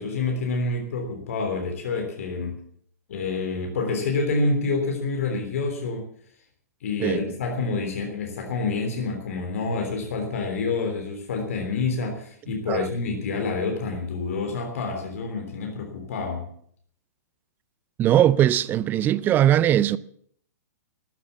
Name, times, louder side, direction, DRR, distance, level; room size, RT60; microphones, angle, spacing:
voice 1, 0.0-2.6 3.1-6.0 6.8-16.5, left 3 dB, 55° left, 3.5 m, -27 dB
voice 2, 18.0-20.0, right 11 dB, 20° right, 0.6 m, -20 dB
13.5 x 10.5 x 8.3 m
figure-of-eight pair, 115°, 9 cm